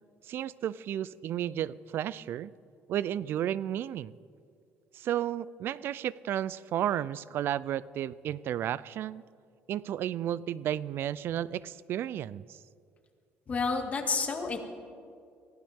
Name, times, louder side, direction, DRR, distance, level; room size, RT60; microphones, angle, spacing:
voice 1, 0.2-2.5 2.9-4.2 4.9-9.2 9.7-12.6, right 11 dB, 60° right, 20 dB, 0.4 m, -33 dB
voice 2, 13.5-14.6, left 4 dB, 35° left, 3 dB, 2.3 m, -30 dB
24.0 x 16.0 x 3.6 m, 2.3 s
cardioid pair, 105°, 4 cm